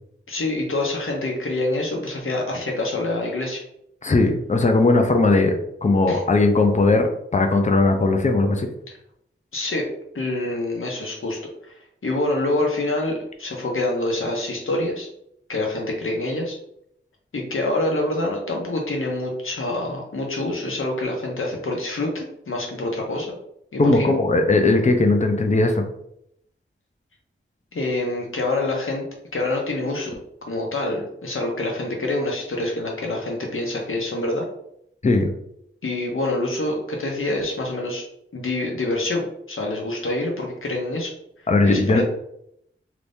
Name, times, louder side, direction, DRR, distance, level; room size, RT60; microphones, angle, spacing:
voice 1, 0.3-3.6 6.1-6.2 9.5-9.9 10.1-11.8 12.0-15.1 15.5-16.6 17.3-23.3 23.7-24.2 27.7-29.1 29.3-30.2 30.5-34.5 35.8-38.0 38.3-41.1 41.6-42.0, left 2 dB, 75° left, 0 dB, 0.9 m, -26 dB
voice 2, 4.0-7.1 7.3-8.7 23.8-25.8 35.0-35.3 41.5-42.0, left 2 dB, 35° left, 5 dB, 0.5 m, -18 dB
2.9 x 2.6 x 3.4 m, 0.74 s
wide cardioid pair, 70°, 21 cm